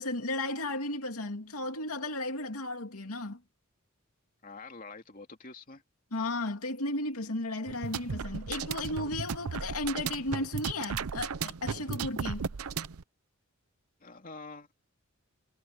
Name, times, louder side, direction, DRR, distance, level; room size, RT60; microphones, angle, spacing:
voice 1, 0.0-3.4 6.1-12.5, left 2 dB, 85° left, 2.5 m, -34 dB
voice 2, 4.4-5.8 14.0-14.7, left 3 dB, 40° left, 3.0 m, -46 dB
sound 1, 7.7-13.0, right 6 dB, 80° right, 0.6 m, -35 dB
head